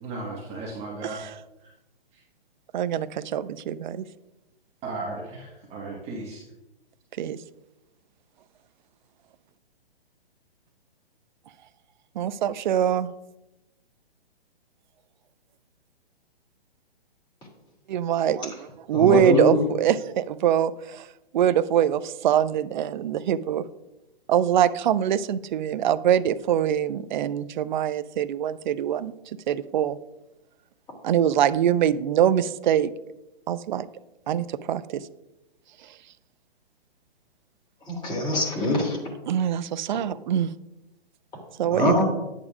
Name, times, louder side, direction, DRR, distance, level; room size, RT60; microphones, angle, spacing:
voice 1, 0.0-1.2 1.6-1.7 2.1-2.2 4.8-6.4, right 2 dB, 20° right, -4 dB, 1.5 m, -35 dB
voice 2, 2.7-4.0 7.2-7.4 12.2-13.1 17.9-21.1 21.3-23.6 24.3-29.1 29.5-30.0 31.0-32.9 33.5-33.9 34.3-35.1 35.8-35.9 39.3-40.5 41.6-42.0, right 10 dB, 50° right, 15 dB, 0.5 m, -23 dB
voice 3, 18.9-19.6 37.9-39.0 41.6-42.0, left 1 dB, 15° left, -2 dB, 2.7 m, -23 dB
10.5 x 9.0 x 2.4 m, 0.97 s
hypercardioid pair, 140°, 30 cm